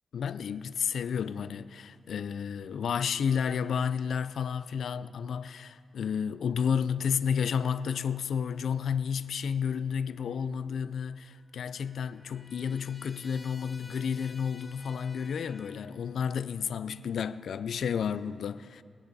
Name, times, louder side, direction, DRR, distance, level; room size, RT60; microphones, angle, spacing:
voice 1, 0.1-18.8, left 7 dB, 80° left, 0.4 m, -31 dB
Trumpet, 11.3-16.0, left 2 dB, 30° left, 2.0 m, -53 dB
23.5 x 8.9 x 4.1 m
cardioid pair, 70°, 0 cm